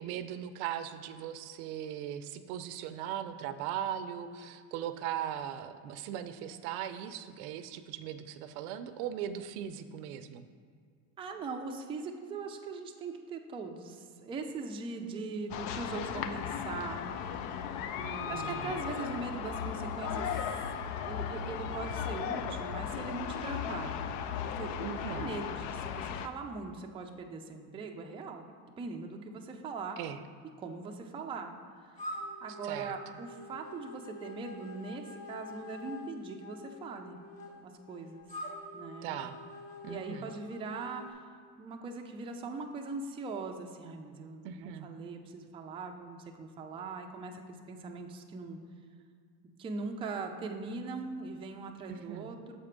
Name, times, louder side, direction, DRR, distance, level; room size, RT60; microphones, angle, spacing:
voice 1, 0.0-10.5 17.9-18.7 24.8-25.3 30.0-30.2 32.6-33.0 39.0-39.4 39.8-40.3 44.4-44.9 51.9-52.3, right 10 dB, 90° right, 11 dB, 0.6 m, -39 dB
voice 2, 11.2-17.5 18.3-20.3 21.0-24.0 24.4-24.7 25.1-28.4 28.8-30.0 30.6-31.5 31.8-37.2 37.6-38.3 38.7-39.2 39.8-41.3 41.6-48.6 49.6-52.6, right 4 dB, 15° right, 3 dB, 0.3 m, -41 dB
sound 1, 15.5-26.3, left 8 dB, 70° left, 0.5 m, -36 dB
sound 2, 32.0-41.1, left 1 dB, 15° left, 1.1 m, -46 dB
6.7 x 4.4 x 5.0 m, 2.1 s
cardioid pair, 125°, 42 cm